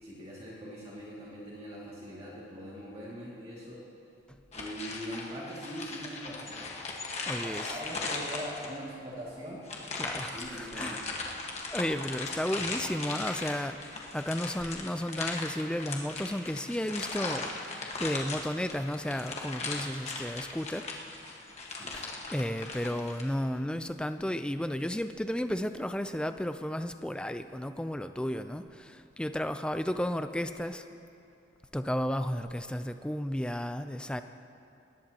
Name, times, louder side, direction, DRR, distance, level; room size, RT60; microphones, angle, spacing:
voice 1, 0.0-3.8 4.5-6.7 7.4-9.6 10.3-11.2 21.7-22.0, equal, 30° right, -7 dB, 2.3 m, -42 dB
sound 1, 4.5-8.9 9.6-23.2, left 3 dB, 35° left, 1.4 m, -38 dB
voice 2, 7.3-7.7 10.0-11.0 11.7-20.9 21.9-30.8 31.7-34.2, equal, 5° left, 9 dB, 0.4 m, -33 dB
20.5 x 18.5 x 2.9 m, 2.7 s
head